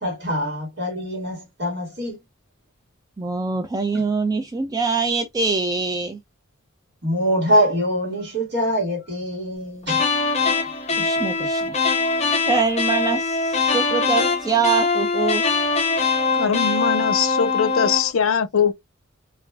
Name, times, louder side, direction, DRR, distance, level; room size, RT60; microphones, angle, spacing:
voice 1, 0.0-2.2 7.0-10.5 11.0-11.1, equal, 55° right, 1.3 m, -24 dB
voice 2, 3.2-6.2 11.0-11.8 12.4-15.4, right 4 dB, 20° right, 0.3 m, -24 dB
sound 1, 9.8-18.1, left 4 dB, 35° left, 0.7 m, -22 dB
voice 3, 16.4-18.7, left 7 dB, 80° left, 0.5 m, -21 dB
3.3 x 2.4 x 2.3 m
head